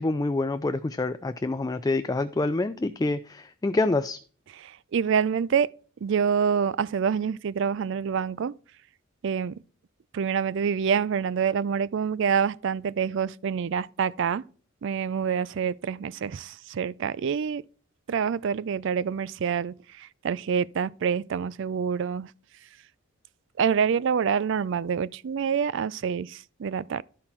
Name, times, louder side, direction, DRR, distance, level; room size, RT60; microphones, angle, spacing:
voice 1, 0.0-4.2, left 2 dB, 15° left, 0.3 m, -27 dB
voice 2, 4.6-5.7 6.0-8.5 9.2-9.6 10.1-14.4 14.8-17.6 18.1-22.3 23.6-27.0, right 7 dB, 60° right, 0.4 m, -26 dB
11.5 x 5.7 x 4.4 m
head